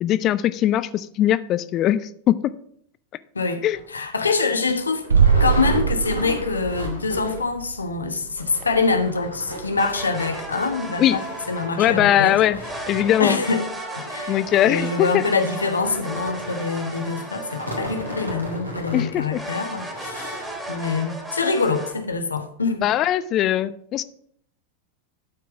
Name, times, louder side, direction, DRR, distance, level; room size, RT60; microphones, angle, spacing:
voice 1, 0.0-2.5 3.6-3.8 11.0-11.2 11.8-12.6 12.9-13.4 14.3-15.2 18.9-19.4 22.8-24.0, left 12 dB, 35° left, 0.5 m, -20 dB
voice 2, 3.3-5.1 5.4-12.4 13.2-22.8, left 4 dB, 75° left, 1.2 m, -25 dB
sound 1, 3.7-3.9 4.4-4.5 4.7-7.6 7.9-8.0 8.3-21.1 21.6-21.7 22.1-22.2, equal, 85° right, 2.5 m, -36 dB
sound 2, 5.1-10.8 11.1-11.2, right 6 dB, 70° right, 1.1 m, -24 dB
sound 3, 9.8-12.0 12.6-18.8 19.3-21.9, right 1 dB, 10° right, 2.2 m, -35 dB
12.0 x 4.6 x 6.1 m
figure-of-eight pair, 90°, 0 cm